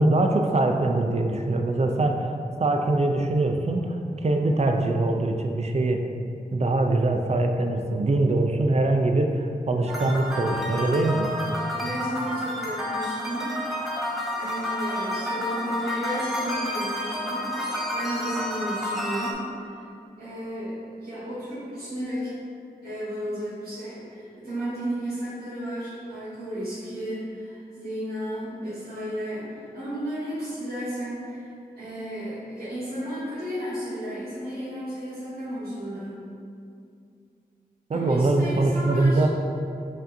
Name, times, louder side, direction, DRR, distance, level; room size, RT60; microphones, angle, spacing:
voice 1, 0.0-2.3 2.6-4.0 4.2-6.0 6.5-11.3 37.9-39.3, right 2 dB, 45° right, 4 dB, 0.4 m, -23 dB
sound 1, 9.9-19.3, left 1 dB, ahead, 0.7 m, -30 dB
voice 2, 11.7-14.1 14.4-19.4 19.6-19.9 20.2-22.3 22.8-36.2 37.9-39.2, equal, 75° right, -13 dB, 1.2 m, -33 dB
5.1 x 2.6 x 2.6 m, 2.4 s
cardioid pair, 45°, 16 cm